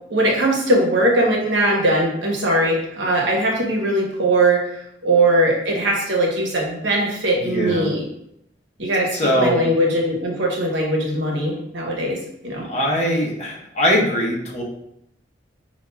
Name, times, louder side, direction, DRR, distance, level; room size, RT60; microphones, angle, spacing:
voice 1, 0.1-4.6 5.0-8.1 8.8-9.1 9.4-12.2 12.4-12.6, right 1 dB, 85° right, -1 dB, 0.9 m, -20 dB
voice 2, 7.4-7.9 9.1-9.7 12.7-14.6, equal, 40° left, -3 dB, 0.8 m, -21 dB
5.4 x 2.4 x 2.2 m, 0.77 s
head